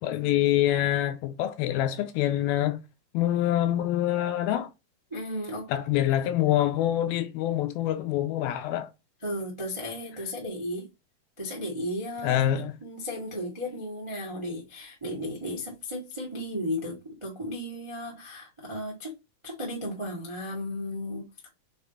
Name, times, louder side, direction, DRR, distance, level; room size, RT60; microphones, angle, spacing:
voice 1, 0.0-2.8 3.1-4.7 5.7-8.9 12.2-12.7, left 12 dB, 80° left, 2.3 m, -25 dB
voice 2, 5.1-5.7 9.2-10.9 11.4-19.1 19.4-21.2, left 1 dB, 40° right, 0.4 m, -35 dB
6.2 x 3.7 x 4.2 m
omnidirectional pair, 4.6 m